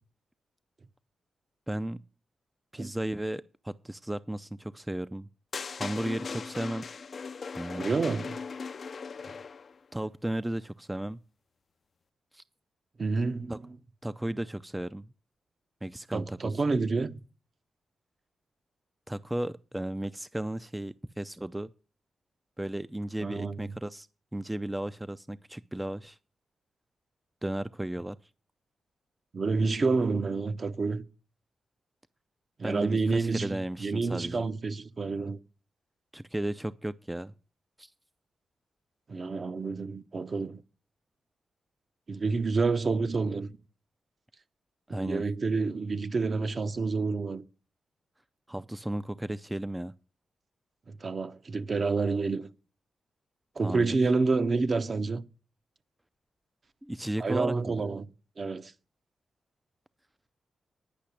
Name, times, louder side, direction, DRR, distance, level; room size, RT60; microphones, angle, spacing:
voice 1, 1.7-2.0 2.7-5.3 5.8-6.9 7.6-7.9 9.9-11.2 12.3-12.4 13.5-13.6 14.0-15.1 15.8-16.6 19.1-21.7 22.6-24.1 24.3-26.2 27.4-28.2 32.6-34.4 36.1-37.3 37.8-37.9 44.9-45.2 48.5-49.9 53.6-54.1 56.8-57.8, right 1 dB, 10° right, 0.4 m, -34 dB
sound 1, 5.5-9.8, left 5 dB, 55° left, 0.5 m, -39 dB
voice 2, 7.8-8.4 13.0-13.6 16.1-17.1 23.2-23.6 29.3-31.0 32.6-35.4 39.1-40.6 42.1-43.5 44.9-47.4 50.9-52.5 53.6-55.2 57.2-58.1 58.4-58.7, right 4 dB, 50° right, 0.8 m, -28 dB
10.0 x 5.7 x 8.5 m
cardioid pair, 65°, 0 cm